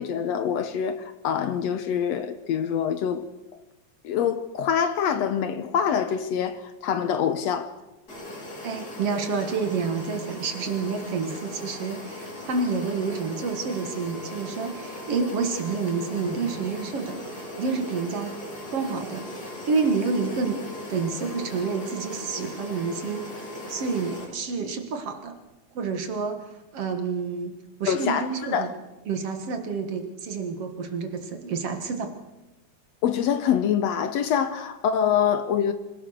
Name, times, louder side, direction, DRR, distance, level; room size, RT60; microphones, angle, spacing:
voice 1, 0.0-3.2 4.0-7.7 27.9-28.7 33.0-35.7, left 8 dB, 70° left, 1.9 m, -25 dB
sound 1, 8.1-24.2, left 1 dB, 30° left, 4.7 m, -38 dB
voice 2, 8.6-18.4 18.7-23.3 23.7-25.4 25.7-26.5 26.7-28.7 29.1-32.1, right 4 dB, 55° right, 2.5 m, -29 dB
25.5 x 16.5 x 6.5 m
omnidirectional pair, 3.4 m